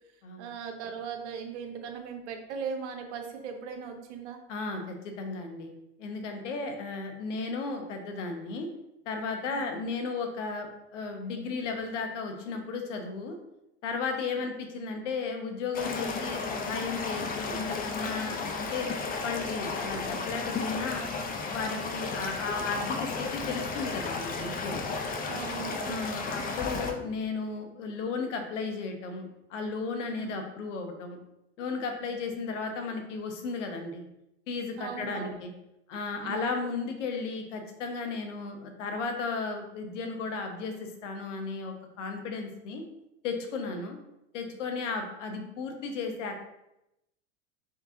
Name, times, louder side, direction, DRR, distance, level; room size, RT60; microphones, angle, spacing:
voice 1, 0.4-4.4 6.4-6.6 9.5-9.7 14.4-14.5 25.3-26.1 30.1-30.3 32.1-32.2 34.8-35.4 36.2-36.5, right 6 dB, 70° right, 5 dB, 0.9 m, -39 dB
voice 2, 4.5-5.7 6.0-8.7 9.1-13.3 13.8-18.9 19.2-21.1 21.5-24.8 25.8-31.2 31.6-34.0 34.5-35.5 35.9-42.8 43.2-44.0 44.3-46.4, left 4 dB, 80° left, 5 dB, 0.9 m, -34 dB
sound 1, 15.7-26.9, left 4 dB, 25° left, 0.5 m, -34 dB
3.9 x 3.7 x 2.7 m, 0.88 s
hypercardioid pair, 95°, 36 cm